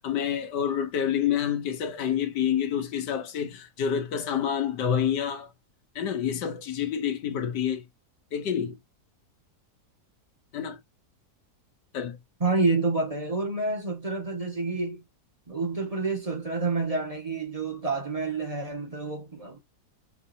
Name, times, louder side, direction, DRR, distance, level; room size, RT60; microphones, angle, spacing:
voice 1, 0.0-5.5 5.9-7.8 8.3-8.8 10.5-10.8 11.9-12.2, left 8 dB, 90° left, 1.5 m, -28 dB
voice 2, 12.4-15.0 15.5-19.6, right 3 dB, 25° right, 1.3 m, -28 dB
6.0 x 2.8 x 2.7 m
omnidirectional pair, 1.8 m